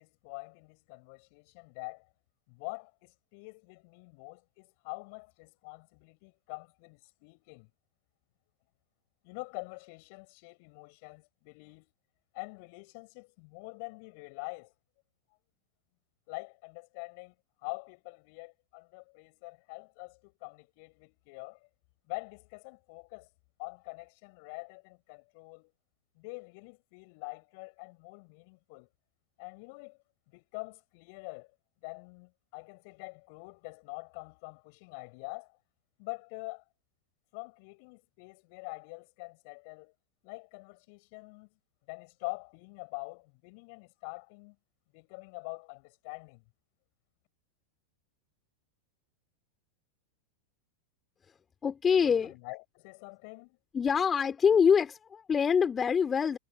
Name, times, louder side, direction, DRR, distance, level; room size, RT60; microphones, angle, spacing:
voice 1, 0.0-2.1 2.5-7.7 9.2-11.9 12.3-14.7 16.3-17.3 17.6-21.7 22.1-23.3 23.6-25.7 26.1-28.9 29.4-30.0 30.3-31.5 31.8-35.6 36.0-36.6 37.3-39.9 40.2-41.5 41.9-44.5 44.9-46.4 52.0-53.6, left 32 dB, 45° left, 7.0 m, -45 dB
voice 2, 51.6-52.3 53.7-56.4, left 6 dB, 20° left, 3.4 m, -25 dB
figure-of-eight pair, 90°, 0 cm